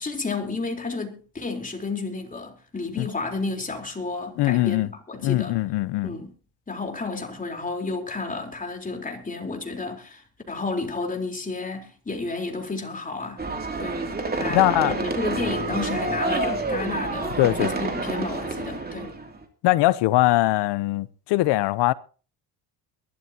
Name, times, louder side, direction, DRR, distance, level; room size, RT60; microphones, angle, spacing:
voice 1, 0.0-5.6 6.0-6.3 6.7-13.4 13.8-14.0 14.3-19.2, left 3 dB, 20° left, 4.1 m, -31 dB
voice 2, 4.4-4.9 5.2-6.1 14.5-15.0 17.4-17.7 19.6-21.9, left 18 dB, 65° left, 0.9 m, -21 dB
sound 1, 13.4-19.4, right 3 dB, 20° right, 2.8 m, -28 dB
22.5 x 12.5 x 2.9 m
supercardioid pair, 100°, 44 cm